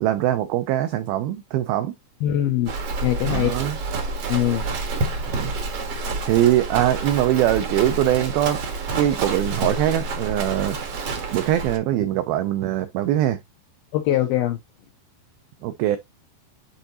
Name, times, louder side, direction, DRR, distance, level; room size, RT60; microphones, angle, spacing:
voice 1, 0.0-1.9 3.2-3.8 5.3-5.5 6.3-8.6 8.9-10.8 11.3-13.4 15.6-16.0, right 12 dB, 90° right, 2.1 m, -22 dB
voice 2, 2.2-2.7 3.0-3.5 4.3-4.7 13.9-14.6, left 12 dB, 85° left, 2.2 m, -22 dB
Livestock farm animals working animals, 2.7-11.8, right 3 dB, 75° right, 1.4 m, -28 dB
sound 1, 8.5-11.4, right 3 dB, 55° right, 1.1 m, -42 dB
10.0 x 3.8 x 2.8 m
omnidirectional pair, 5.1 m